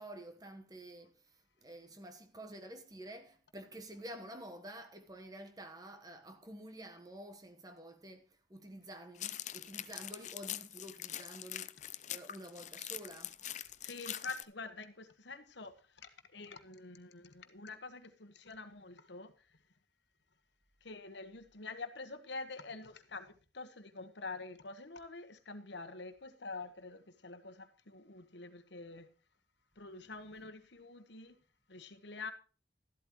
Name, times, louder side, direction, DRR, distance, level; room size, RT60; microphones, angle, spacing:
voice 1, 0.0-13.4 30.0-30.5, right 1 dB, 20° right, 1.2 m, -50 dB
sound 1, 9.1-14.4, left 12 dB, 40° left, 0.6 m, -43 dB
voice 2, 13.8-19.3 20.8-29.1 29.8-31.3 31.7-32.3, left 3 dB, 70° left, 1.3 m, -47 dB
13.5 x 12.0 x 3.1 m
head